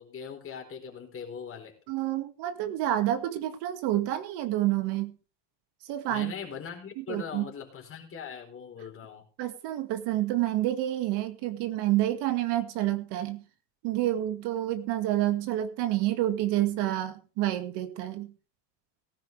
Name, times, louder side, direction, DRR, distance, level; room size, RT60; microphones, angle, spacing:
voice 1, 0.0-1.7 6.1-9.2, left 7 dB, 30° left, 3 dB, 4.2 m, -41 dB
voice 2, 1.9-5.2 5.8-6.3 7.0-7.5 9.4-13.4 13.8-18.3, right 14 dB, 65° right, 9 dB, 2.1 m, -28 dB
18.0 x 10.5 x 3.4 m, 0.35 s
cardioid pair, 135°, 45 cm